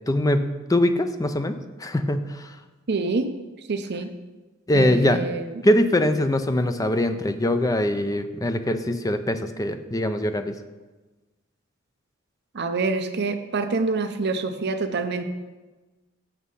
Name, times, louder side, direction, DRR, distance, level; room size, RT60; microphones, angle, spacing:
voice 1, 0.1-2.5 4.7-5.2 5.6-10.5, left 1 dB, 15° left, 9 dB, 0.5 m, -22 dB
voice 2, 2.9-3.3 3.7-4.1 4.7-5.5 12.5-15.2, right 3 dB, 55° right, 8 dB, 0.6 m, -26 dB
8.2 x 6.3 x 5.5 m, 1.2 s
head